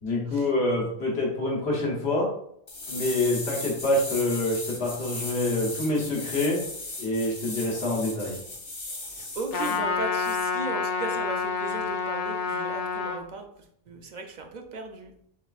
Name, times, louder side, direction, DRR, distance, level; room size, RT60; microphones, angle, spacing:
voice 1, 0.0-2.3 2.9-6.6 7.0-8.4, left 2 dB, 85° left, -2 dB, 1.3 m, -26 dB
sound 1, 2.7-9.8 10.2-10.4, left 2 dB, 35° left, 0.6 m, -37 dB
voice 2, 9.1-13.5 13.9-15.1, right 3 dB, 50° right, 3 dB, 0.6 m, -36 dB
Trumpet, 9.5-13.2, left 5 dB, 65° left, 0.8 m, -28 dB
4.9 x 3.2 x 2.3 m, 0.69 s
omnidirectional pair, 1.1 m